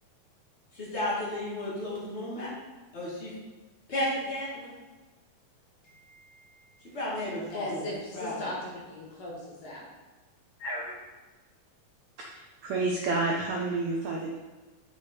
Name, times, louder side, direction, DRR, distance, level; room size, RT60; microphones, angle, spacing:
voice 1, 0.7-2.5 2.9-3.3 3.9-4.7 5.8-6.2 6.9-7.9 8.1-8.4, left 1 dB, 35° left, -7 dB, 1.1 m, -33 dB
voice 2, 7.5-9.9 10.6-11.0, left 1 dB, 65° left, -4 dB, 3.1 m, -38 dB
voice 3, 12.3-14.3, right 3 dB, 90° right, -1 dB, 1.6 m, -29 dB
6.9 x 4.8 x 4.3 m, 1.2 s
omnidirectional pair, 4.3 m